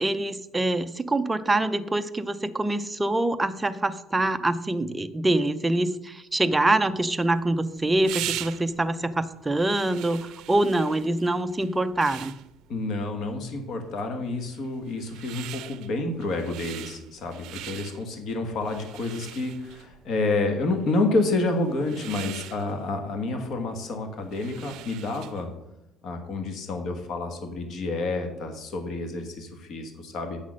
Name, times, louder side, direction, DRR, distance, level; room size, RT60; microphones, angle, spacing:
voice 1, 0.0-12.3, right 2 dB, 10° right, 9 dB, 0.4 m, -25 dB
sound 1, 7.0-25.5, right 14 dB, 65° right, 0.5 m, -42 dB
voice 2, 12.7-25.5 26.0-30.4, left 2 dB, 45° left, 6 dB, 1.3 m, -29 dB
8.3 x 6.2 x 6.3 m, 0.87 s
cardioid pair, 170°, 0 cm